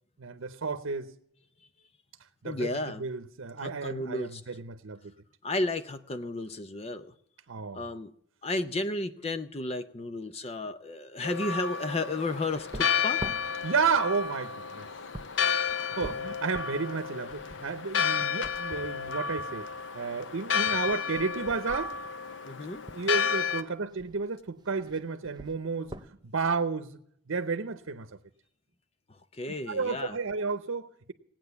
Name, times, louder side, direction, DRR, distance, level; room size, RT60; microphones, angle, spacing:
voice 1, 0.2-1.1 2.4-5.1 7.5-7.9 13.6-14.9 15.8-19.7 19.9-22.0 22.9-27.0 27.3-28.1 29.7-31.1, right 4 dB, 85° right, 0.8 m, -32 dB
voice 2, 2.4-3.0 3.6-4.4 5.4-7.1 7.7-8.1 8.4-13.2 22.4-22.8 29.3-30.2, left 2 dB, 30° left, 0.5 m, -33 dB
Church bell, 11.2-23.6, left 7 dB, 65° left, 0.7 m, -31 dB
sound 1, 12.5-23.1 23.9-24.4 24.6-26.1, right 1 dB, 20° right, 0.6 m, -46 dB
18.0 x 9.0 x 6.9 m
head